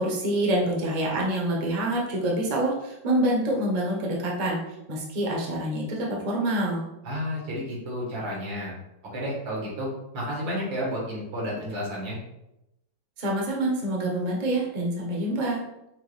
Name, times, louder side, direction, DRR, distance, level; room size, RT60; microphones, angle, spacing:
voice 1, 0.0-4.6 4.9-6.8 13.2-15.6, right 1 dB, 35° right, -2 dB, 0.7 m, -26 dB
voice 2, 7.0-8.7 9.1-9.9 10.1-12.2, equal, 85° right, -5 dB, 2.3 m, -31 dB
5.7 x 2.4 x 3.2 m, 0.86 s
omnidirectional pair, 2.0 m